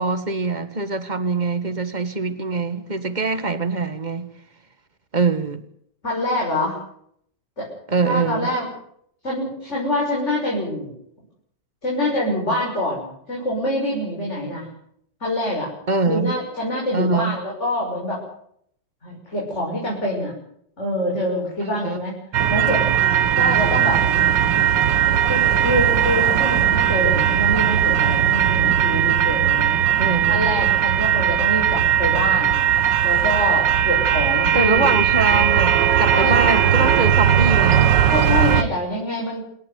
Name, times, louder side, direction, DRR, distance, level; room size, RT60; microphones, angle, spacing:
voice 1, 0.0-4.3 5.1-5.6 7.9-8.5 15.9-16.3 16.9-17.4 21.6-22.0 30.0-30.5 34.5-38.0, right 3 dB, 25° right, 10 dB, 1.8 m, -23 dB
voice 2, 6.0-6.8 7.6-7.7 8.0-8.7 9.2-10.9 11.8-14.7 15.2-15.7 16.1-18.2 19.0-20.3 20.8-22.2 22.5-22.9 23.3-24.0 25.3-29.8 30.3-32.6 33.0-34.9 36.1-36.5 38.1-39.4, left 1 dB, 40° left, -3 dB, 6.8 m, -25 dB
sound 1, 22.3-38.6, right 9 dB, 80° right, 1.8 m, -18 dB
27.5 x 12.0 x 9.5 m, 0.69 s
omnidirectional pair, 1.9 m